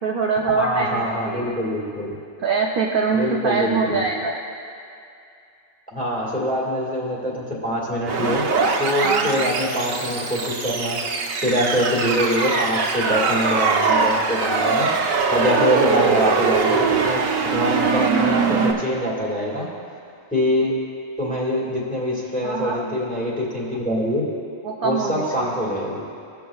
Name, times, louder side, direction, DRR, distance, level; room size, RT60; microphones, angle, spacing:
voice 1, 0.0-1.5 2.4-4.4 9.0-9.5 22.4-23.0 24.6-25.5, right 5 dB, 50° right, -2 dB, 0.8 m, -24 dB
voice 2, 0.5-2.2 3.1-4.0 5.9-8.4 8.8-11.0 11.4-14.9 15.3-19.7 20.3-20.8 21.2-24.3 24.8-26.1, equal, 5° left, -6 dB, 1.9 m, -24 dB
sound 1, 8.1-18.7, right 4 dB, 80° right, 1.2 m, -22 dB
18.0 x 7.0 x 2.3 m, 2.5 s
omnidirectional pair, 1.4 m